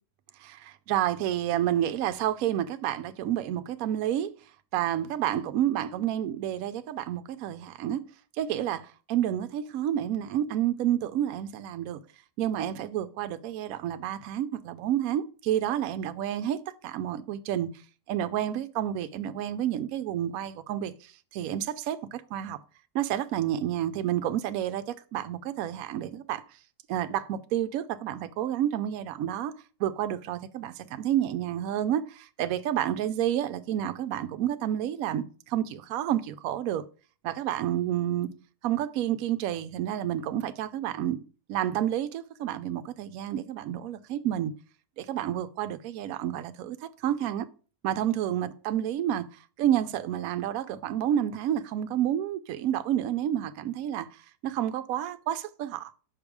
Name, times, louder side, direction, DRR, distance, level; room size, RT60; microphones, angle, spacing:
voice 1, 0.4-4.3 4.7-8.0 8.4-12.0 12.4-16.6 16.8-17.7 18.1-22.6 22.9-26.4 26.9-29.5 29.8-36.8 37.2-38.3 38.6-41.2 41.5-44.5 45.0-46.8 47.0-47.5 47.8-49.2 49.6-54.1 54.4-55.9, right 11 dB, 70° right, 1.0 m, -29 dB
5.6 x 5.2 x 4.7 m
omnidirectional pair, 1.7 m